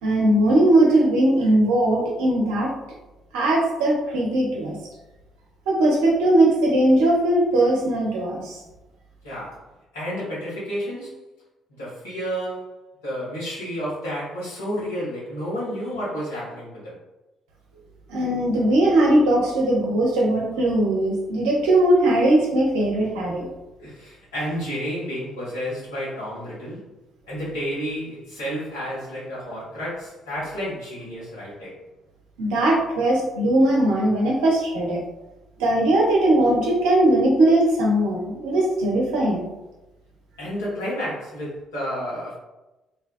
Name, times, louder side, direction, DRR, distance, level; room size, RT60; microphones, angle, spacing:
voice 1, 0.0-2.7 3.3-4.8 5.7-8.6 18.1-23.5 32.4-35.0 35.6-39.5, right 1 dB, 65° right, -2 dB, 0.6 m, -19 dB
voice 2, 9.2-9.6 9.9-11.1 11.8-12.7 13.0-17.0 23.8-26.9 27.3-31.8 40.4-42.4, equal, 75° left, -8 dB, 1.1 m, -31 dB
2.7 x 2.3 x 2.4 m, 1.0 s
figure-of-eight pair, 45°, 0 cm